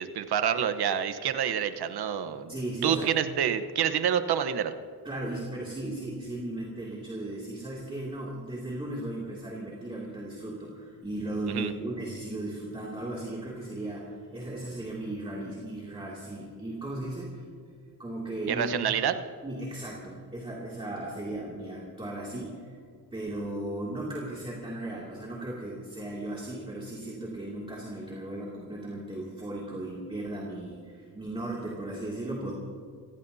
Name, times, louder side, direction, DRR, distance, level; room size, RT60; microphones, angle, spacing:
voice 1, 0.0-2.5 2.8-4.7 11.5-11.7 18.5-19.1, right 8 dB, 85° right, 10 dB, 1.1 m, -27 dB
voice 2, 2.5-3.1 5.0-17.5 18.0-18.7 19.4-22.8 23.1-32.5, right 1 dB, 15° right, -5 dB, 2.6 m, -36 dB
28.5 x 16.5 x 2.8 m, 2.2 s
wide cardioid pair, 160°, 38 cm